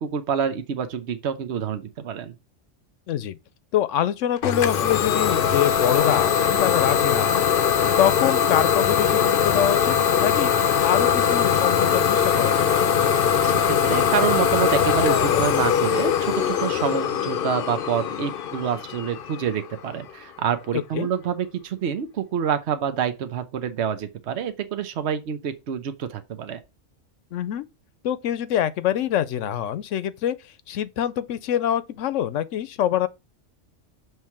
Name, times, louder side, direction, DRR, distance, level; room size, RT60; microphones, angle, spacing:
voice 1, 0.0-2.4 13.4-26.6, right 8 dB, 65° right, 1.1 m, -27 dB
voice 2, 3.1-3.4 3.7-7.5 8.0-10.5 10.8-12.7 20.9-21.1 27.3-27.7 28.0-30.3 30.7-33.1, left 10 dB, 80° left, 1.0 m, -25 dB
Idling / Domestic sounds home sounds, 4.4-20.0, left 8 dB, 55° left, 0.7 m, -21 dB
6.8 x 3.2 x 5.8 m
omnidirectional pair, 1.3 m